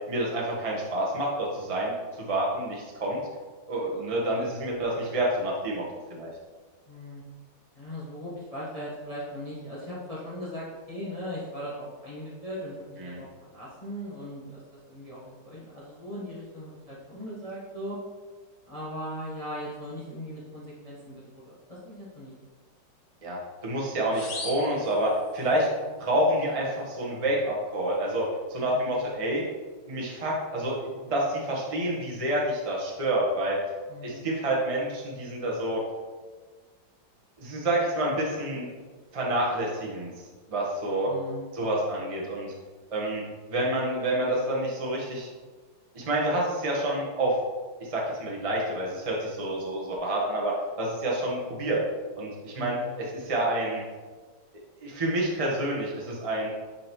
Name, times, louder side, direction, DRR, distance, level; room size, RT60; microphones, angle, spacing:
voice 1, 0.1-3.2 3.7-5.8 6.1-6.3 13.0-13.2 23.2-23.4 23.6-25.7 26.0-29.4 29.9-33.6 34.0-35.8 37.4-38.7 39.1-40.1 40.5-41.1 41.5-42.5 42.9-43.2 43.5-45.3 45.9-47.4 47.8-51.8 52.2-52.8 53.1-53.8 54.8-56.5, right 1 dB, 25° right, -3 dB, 0.8 m, -28 dB
voice 2, 6.9-7.2 7.7-18.0 18.7-22.3 25.7-25.9 28.6-29.0 33.9-34.4 41.0-41.6 52.6-52.8, equal, 25° left, -7 dB, 1.0 m, -39 dB
sound 1, 24.1-25.7, left 3 dB, 90° left, 1.9 m, -40 dB
8.9 x 4.2 x 3.0 m, 1.4 s
omnidirectional pair, 2.0 m